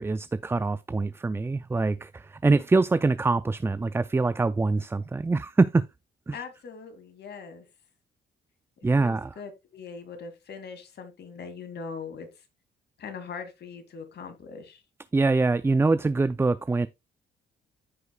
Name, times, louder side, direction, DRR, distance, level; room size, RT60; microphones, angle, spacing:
voice 1, 0.0-5.9 6.3-6.4 8.8-9.3 15.1-16.9, right 3 dB, 10° right, 0.3 m, -24 dB
voice 2, 6.3-7.6 9.0-12.3 13.0-14.8, left 5 dB, 60° left, 2.2 m, -41 dB
14.5 x 4.9 x 2.2 m
cardioid pair, 90°, 20 cm